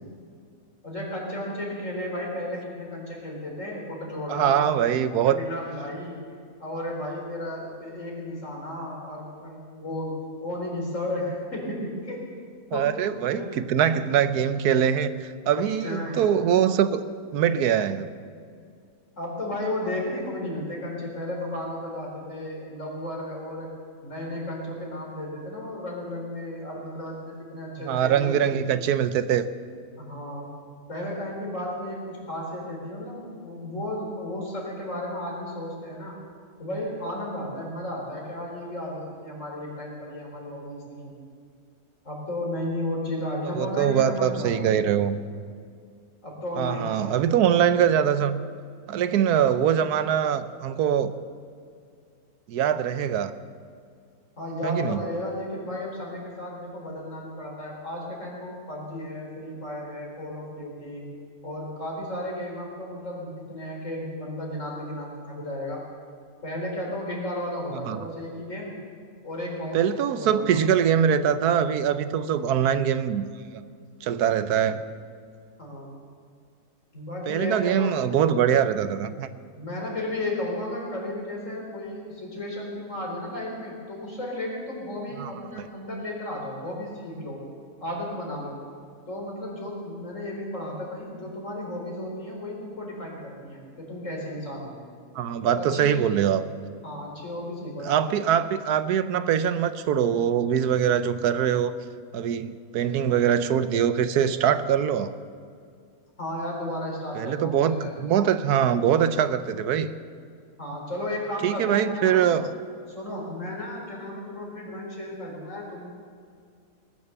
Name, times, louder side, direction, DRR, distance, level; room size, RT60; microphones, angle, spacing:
voice 1, 0.8-6.2 6.6-10.1 10.4-12.2 12.7-12.9 13.2-13.6 15.6-16.2 19.2-23.7 24.0-28.6 30.0-30.5 30.9-36.2 36.6-41.1 42.0-44.7 46.2-47.2 54.4-61.1 61.4-65.8 66.4-68.8 69.2-70.6 75.6-76.0 76.9-78.0 79.5-87.4 87.8-88.6 89.1-94.8 95.4-96.0 96.8-98.2 106.2-107.9 110.6-112.2 112.9-115.9, left 1 dB, 55° left, -2 dB, 4.4 m, -34 dB
voice 2, 4.3-5.4 12.7-17.0 17.3-18.1 27.8-29.5 43.5-45.2 46.6-48.4 48.9-51.1 52.5-53.3 54.6-55.0 67.9-68.0 69.7-73.2 73.5-73.6 74.0-74.8 77.3-79.3 85.2-85.3 95.1-96.4 97.8-101.7 102.1-105.1 107.1-109.9 111.4-112.5, right 9 dB, 85° right, 12 dB, 1.3 m, -23 dB
19.5 x 10.5 x 7.0 m, 2.2 s
omnidirectional pair, 1.6 m